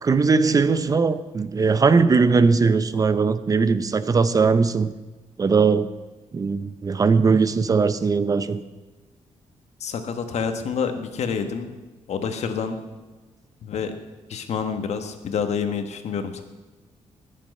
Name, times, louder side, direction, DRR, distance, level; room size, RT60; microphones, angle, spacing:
voice 1, 0.0-4.9 5.4-5.9 6.3-8.6, right 4 dB, 30° right, 0.6 m, -19 dB
voice 2, 9.8-11.7 12.1-12.8 13.6-14.0 14.3-16.4, left 6 dB, 65° left, 1.4 m, -28 dB
20.0 x 7.5 x 5.4 m
cardioid pair, 130°, 12 cm